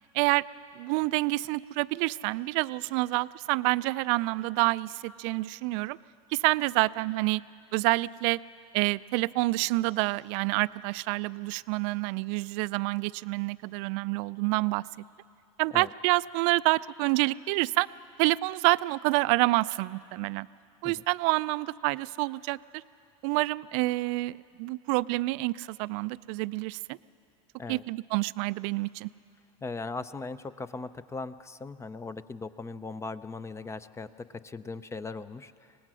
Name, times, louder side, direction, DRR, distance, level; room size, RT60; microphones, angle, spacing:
voice 1, 0.8-6.0 6.3-7.4 7.7-8.4 8.7-14.8 15.6-17.9 18.2-20.5 20.8-22.8 23.2-27.0 27.7-29.1, right 22 dB, 60° right, 18 dB, 0.4 m, -28 dB
voice 2, 29.6-35.8, left 3 dB, 15° left, 14 dB, 0.5 m, -39 dB
25.0 x 19.0 x 6.2 m, 2.6 s
supercardioid pair, 110°, 18 cm